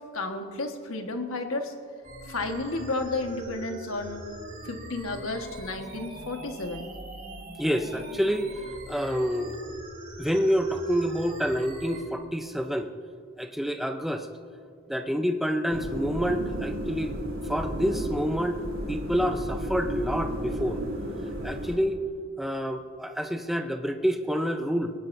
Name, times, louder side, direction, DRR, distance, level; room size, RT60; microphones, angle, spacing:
voice 1, 0.0-1.7 2.3-4.3 4.6-6.9, left 2 dB, 80° left, 4 dB, 1.5 m, -32 dB
sound 1, 2.0-12.0, right 1 dB, 40° right, 3.7 m, -42 dB
voice 2, 7.6-8.5 8.9-9.6 10.2-12.9 13.4-14.3 14.9-17.1 17.5-18.6 18.9-20.8 21.4-22.0 22.4-24.9, equal, ahead, 5 dB, 0.6 m, -28 dB
sound 2, 15.7-21.8, right 1 dB, 65° right, 3.5 m, -33 dB
22.0 x 19.0 x 2.7 m, 2.2 s
head